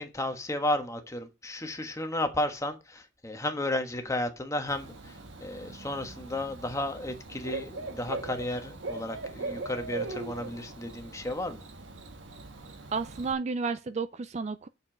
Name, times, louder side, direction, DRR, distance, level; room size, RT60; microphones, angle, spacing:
voice 1, 0.0-11.6, left 1 dB, 15° left, 1.3 m, -33 dB
Bird / Cricket, 4.7-13.3, right 3 dB, 85° right, 1.4 m, -40 dB
voice 2, 12.9-14.7, right 4 dB, 35° right, 0.4 m, -32 dB
6.9 x 5.4 x 7.2 m
head